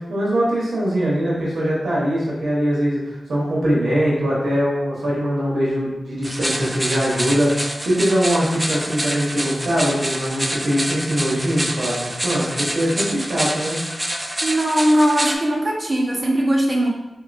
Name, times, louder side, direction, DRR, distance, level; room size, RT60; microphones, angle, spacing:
voice 1, 0.0-13.8, equal, 80° right, -6 dB, 1.1 m, -22 dB
sound 1, 6.2-15.4, right 1 dB, 15° right, 0.4 m, -27 dB
voice 2, 14.4-16.9, right 1 dB, 35° right, -1 dB, 0.8 m, -19 dB
3.8 x 2.9 x 2.5 m, 0.98 s
cardioid pair, 55°, 0 cm